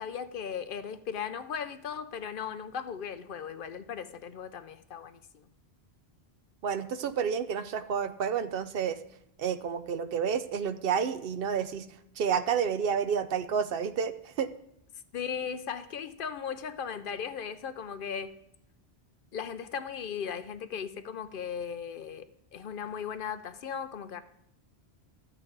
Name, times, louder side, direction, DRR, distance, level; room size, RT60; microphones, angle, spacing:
voice 1, 0.0-5.4 15.1-18.3 19.3-24.2, left 7 dB, 60° left, 11 dB, 0.7 m, -37 dB
voice 2, 6.6-9.0 9.4-11.9 12.2-14.5, right 7 dB, 65° right, 11 dB, 0.7 m, -30 dB
13.0 x 7.5 x 3.9 m, 0.77 s
omnidirectional pair, 1.1 m